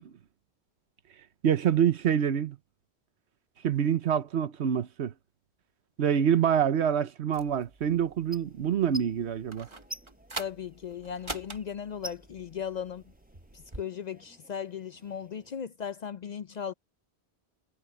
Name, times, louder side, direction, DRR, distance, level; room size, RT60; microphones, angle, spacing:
voice 1, 1.4-2.6 3.6-5.1 6.0-9.7, right 8 dB, 85° right, 1.2 m, -26 dB
sound 1, 7.3-13.8, right 2 dB, 25° right, 1.5 m, -45 dB
sound 2, 8.2-15.6, right 1 dB, 10° right, 6.7 m, -49 dB
voice 2, 10.4-13.0 13.5-16.7, left 8 dB, 55° left, 0.5 m, -37 dB
omnidirectional pair, 1.1 m